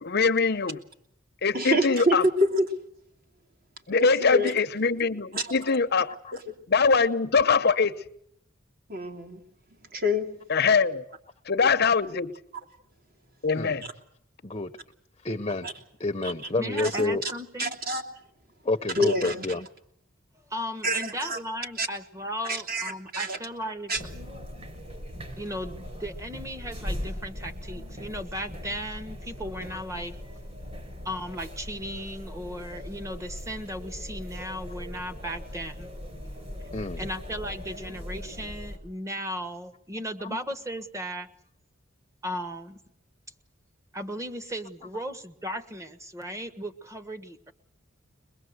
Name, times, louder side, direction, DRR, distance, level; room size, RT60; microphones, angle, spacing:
voice 1, 0.0-0.8 1.4-2.2 3.9-6.1 6.7-8.0 10.5-11.0 11.5-12.4 13.4-13.8, left 5 dB, 55° left, 10 dB, 0.8 m, -23 dB
voice 2, 1.5-2.7 4.0-4.5 5.3-5.6 8.9-9.4 9.9-10.3 15.6-15.7 16.2-16.3 16.8-16.9 17.2-17.3 17.6-18.0 18.9-19.5 20.8-21.4 21.8-21.9 22.4-23.4 23.9-24.0, equal, 50° right, 3 dB, 3.0 m, -27 dB
voice 3, 15.2-15.7 16.0-17.2 18.6-19.7 36.7-37.0 40.2-40.4, left 2 dB, 30° left, 8 dB, 0.9 m, -28 dB
voice 4, 16.6-17.7 20.5-23.9 25.4-30.2 31.0-35.9 37.0-41.3 42.2-42.8 43.9-47.5, equal, 15° right, 10 dB, 1.4 m, -36 dB
sound 1, 23.9-38.8, equal, 30° right, 4.2 m, -39 dB
23.5 x 21.0 x 8.0 m, 0.71 s
head